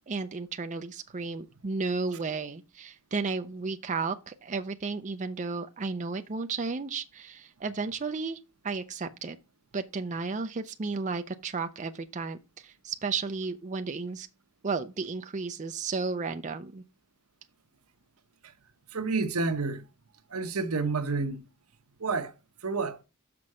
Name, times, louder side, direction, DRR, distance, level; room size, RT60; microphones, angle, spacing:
voice 1, 0.1-9.4 9.7-14.3 14.6-16.8, right 4 dB, 35° right, 0.5 m, -33 dB
voice 2, 18.9-19.8 20.3-21.4 22.0-22.3 22.6-23.0, right 4 dB, 80° right, 0.9 m, -29 dB
6.4 x 6.0 x 4.8 m
head